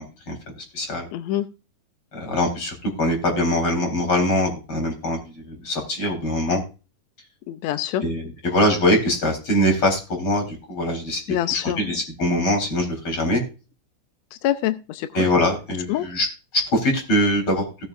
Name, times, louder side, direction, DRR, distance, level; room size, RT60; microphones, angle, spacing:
voice 1, 0.0-1.1 2.1-6.6 8.0-11.2 11.5-13.4 15.1-16.3 16.5-17.6, left 1 dB, 40° left, 2 dB, 4.6 m, -23 dB
voice 2, 1.1-1.5 7.5-8.0 11.3-12.0 14.4-15.1 15.9-16.1, left 12 dB, 85° left, 11 dB, 1.5 m, -25 dB
18.0 x 7.0 x 2.5 m, 0.32 s
omnidirectional pair, 3.8 m